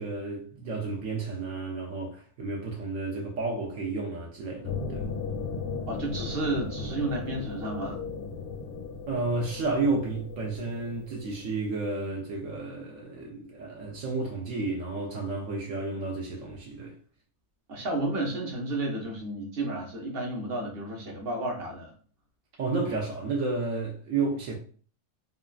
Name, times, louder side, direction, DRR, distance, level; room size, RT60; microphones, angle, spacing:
voice 1, 0.0-5.1 9.1-17.0 22.6-24.6, right 3 dB, 70° right, 1.0 m, -31 dB
sound 1, 4.6-11.6 11.9-12.0, left 4 dB, 65° left, 0.8 m, -36 dB
voice 2, 5.9-8.0 17.7-21.9, right 2 dB, 50° right, 0.9 m, -32 dB
3.2 x 2.3 x 2.3 m
omnidirectional pair, 1.5 m